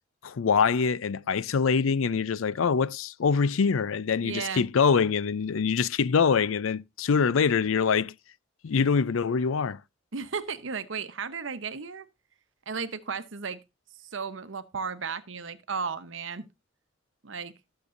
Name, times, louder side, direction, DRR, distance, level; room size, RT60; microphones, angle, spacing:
voice 1, 0.2-8.1 8.6-9.8, left 5 dB, 90° left, 0.5 m, -24 dB
voice 2, 4.2-4.7 10.1-12.1 12.7-13.6 14.0-16.5 17.2-17.5, right 5 dB, 70° right, 0.9 m, -34 dB
19.0 x 6.8 x 2.6 m
head